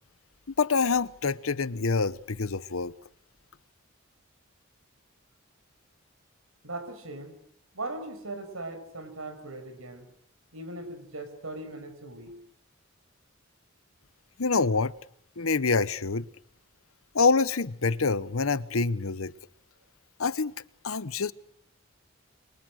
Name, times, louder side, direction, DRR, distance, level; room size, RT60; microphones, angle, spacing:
voice 1, 0.6-2.9 14.4-14.9 15.4-16.3 17.1-19.3 20.2-20.5 20.8-21.3, left 4 dB, 85° left, 1.0 m, -26 dB
voice 2, 6.6-7.4 7.7-10.1 10.5-12.3, right 2 dB, 90° right, 6.1 m, -39 dB
29.5 x 23.5 x 6.5 m
head